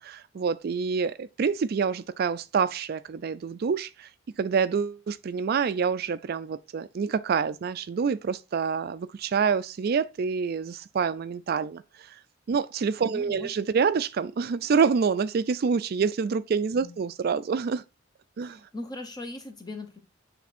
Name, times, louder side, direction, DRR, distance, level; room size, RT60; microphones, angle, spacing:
voice 1, 0.0-4.1 4.4-12.2 12.5-17.8 18.4-18.6, right 6 dB, 50° right, 0.4 m, -27 dB
voice 2, 13.0-13.5 16.8-16.9 18.4-20.0, left 2 dB, 20° left, 1.1 m, -39 dB
8.3 x 3.5 x 4.2 m
head